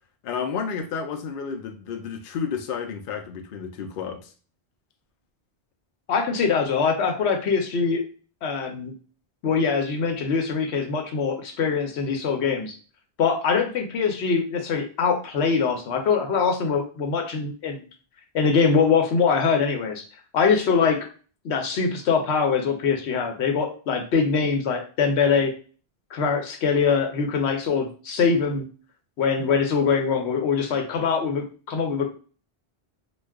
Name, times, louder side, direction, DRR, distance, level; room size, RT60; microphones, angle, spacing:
voice 1, 0.2-4.3, left 6 dB, 60° left, 5 dB, 0.6 m, -31 dB
voice 2, 6.1-8.0 8.4-8.9 9.4-12.8 13.2-17.8 18.3-20.0 20.3-21.0 21.4-25.5 26.1-28.6 29.2-32.1, left 5 dB, 90° left, 4 dB, 1.0 m, -23 dB
2.4 x 2.3 x 3.4 m, 0.39 s
omnidirectional pair, 1.1 m